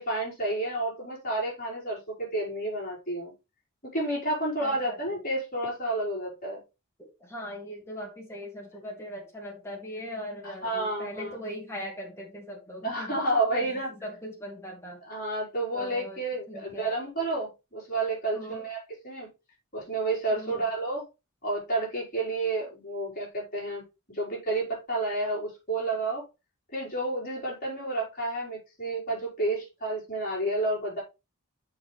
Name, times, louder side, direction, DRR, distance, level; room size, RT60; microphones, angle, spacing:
voice 1, 0.0-3.3 3.9-6.6 10.4-11.4 12.8-13.9 15.0-19.3 19.7-21.0 21.4-23.8 24.1-26.2 26.7-31.0, right 2 dB, 40° left, 4.7 m, -30 dB
voice 2, 4.6-5.0 7.0-13.2 13.6-13.7 14.0-15.0 15.7-16.2 16.5-17.0 18.3-18.7 20.3-20.6, equal, 10° left, 2.1 m, -40 dB
7.1 x 5.6 x 3.4 m
head